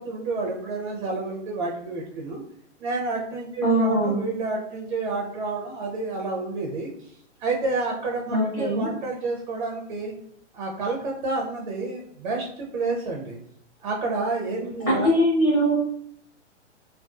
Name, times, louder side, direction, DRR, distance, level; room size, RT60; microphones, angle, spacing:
voice 1, 0.0-2.4 2.8-7.1 7.4-10.1 10.5-13.4 13.8-15.1, right 3 dB, 45° right, 0 dB, 0.5 m, -29 dB
voice 2, 3.6-4.2 8.3-8.9 14.9-15.7, equal, 10° left, -9 dB, 0.7 m, -21 dB
2.4 x 2.3 x 2.4 m, 0.66 s
hypercardioid pair, 145°, 37 cm